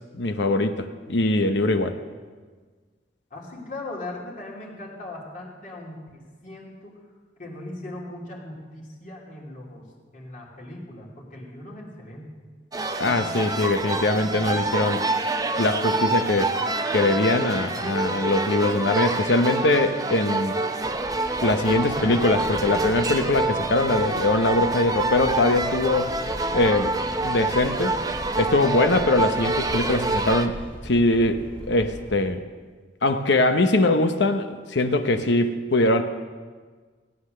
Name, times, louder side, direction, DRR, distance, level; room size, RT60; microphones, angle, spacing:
voice 1, 0.1-2.0 13.0-15.1 15.6-16.6 16.9-20.5 21.4-26.2 26.5-27.0 27.2-28.0 28.4-31.4 31.7-32.4 33.0-36.0, left 2 dB, 70° left, 8 dB, 0.8 m, -22 dB
voice 2, 3.3-7.0 7.4-9.9 10.1-12.4, left 2 dB, 45° left, -3 dB, 3.0 m, -39 dB
sound 1, 12.7-30.5, right 2 dB, 20° right, 0.7 m, -27 dB
sound 2, 20.8-32.2, equal, 5° left, 1.2 m, -40 dB
16.5 x 9.6 x 6.6 m, 1.5 s
head